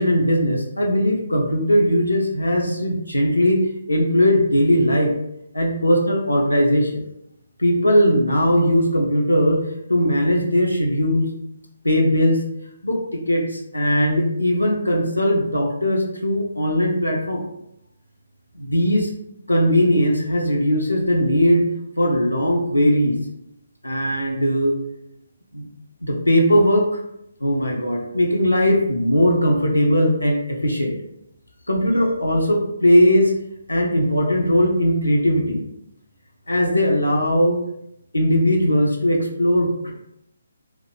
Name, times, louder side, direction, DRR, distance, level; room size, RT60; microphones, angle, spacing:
voice 1, 0.0-3.6 3.9-5.1 5.5-7.0 7.6-11.3 11.8-12.4 12.8-17.4 18.5-19.1 19.5-21.7 22.0-23.1 23.8-24.8 25.5-25.7 26.0-26.9 27.4-30.9 31.7-33.3 33.7-35.6 36.5-37.6 38.1-39.9, equal, 90° left, 0 dB, 0.5 m, -19 dB
2.3 x 2.0 x 2.9 m, 0.80 s
figure-of-eight pair, 145°, 0 cm